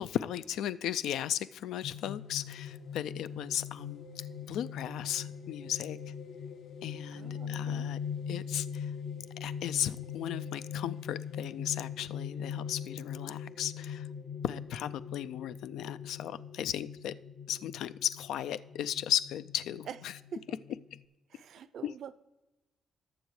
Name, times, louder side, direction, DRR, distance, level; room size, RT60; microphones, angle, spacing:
voice 1, 0.0-6.0 6.8-8.0 8.3-8.9 9.4-14.1 14.4-17.1 17.5-20.1 21.8-21.9, left 11 dB, 85° left, 16 dB, 0.3 m, -36 dB
sound 1, 1.8-21.0, left 7 dB, 60° left, 0.7 m, -41 dB
voice 2, 7.1-7.9 19.9-20.0 20.3-20.6 21.3-22.1, right 8 dB, 60° right, 14 dB, 0.4 m, -45 dB
18.5 x 7.0 x 3.2 m, 1.1 s
cardioid pair, 155°, 0 cm